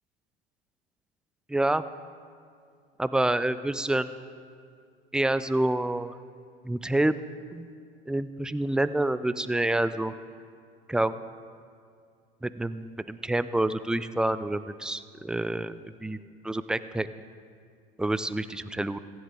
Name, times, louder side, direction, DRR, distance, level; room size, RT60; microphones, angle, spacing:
voice 1, 1.5-1.8 3.0-4.1 5.1-6.2 6.6-7.2 7.5-7.7 8.1-10.1 10.9-11.2 12.4-16.2 16.4-17.1 18.0-19.0, right 1 dB, 5° right, 14 dB, 0.3 m, -27 dB
24.5 x 10.5 x 3.8 m, 2.2 s
figure-of-eight pair, 70°, 30 cm